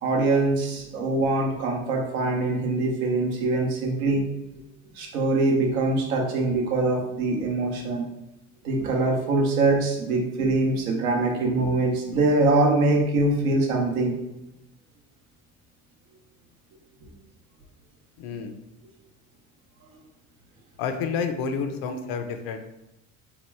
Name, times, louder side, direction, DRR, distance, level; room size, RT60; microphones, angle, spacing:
voice 1, 0.0-4.3 5.0-8.1 8.6-14.2, right 2 dB, 90° right, 0 dB, 0.7 m, -23 dB
voice 2, 18.2-18.5 20.8-22.6, left 5 dB, 65° left, 6 dB, 0.6 m, -29 dB
2.8 x 2.2 x 3.2 m, 0.89 s
hypercardioid pair, 65°, 41 cm